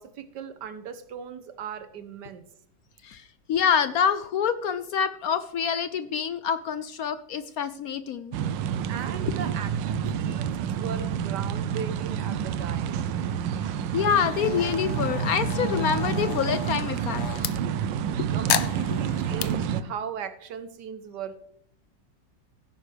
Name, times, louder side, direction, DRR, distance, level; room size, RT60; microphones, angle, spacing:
voice 1, 0.0-2.5 8.9-13.0 18.1-21.4, right 7 dB, 70° right, 11 dB, 1.5 m, -38 dB
voice 2, 3.0-8.4 10.0-10.3 13.9-17.2 18.2-18.3, left 7 dB, 70° left, 12 dB, 0.9 m, -26 dB
sound 1, 8.3-19.8, right 8 dB, 90° right, 1.4 m, -29 dB
sound 2, 14.2-17.5 18.5-19.5, left 9 dB, 85° left, 0.6 m, -32 dB
16.0 x 8.8 x 3.3 m, 0.70 s
omnidirectional pair, 1.9 m